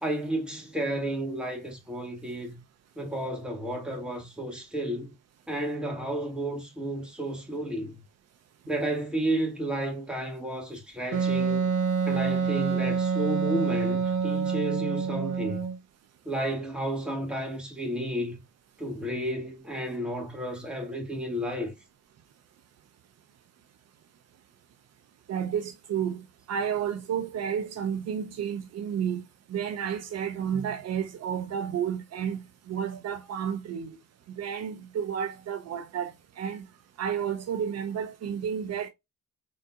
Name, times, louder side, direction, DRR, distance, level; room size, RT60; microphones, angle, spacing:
voice 1, 0.0-2.6 2.9-5.1 5.5-8.0 8.7-11.7 12.0-15.6 16.2-18.3 18.8-21.7, right 1 dB, 5° right, 1.6 m, -32 dB
Wind instrument woodwind instrument, 11.1-15.8, right 6 dB, 75° right, 1.1 m, -27 dB
voice 2, 25.3-29.2 29.5-34.0 34.3-36.7 37.0-38.9, right 8 dB, 60° right, 0.5 m, -31 dB
3.8 x 3.8 x 2.3 m
cardioid pair, 90°, 30 cm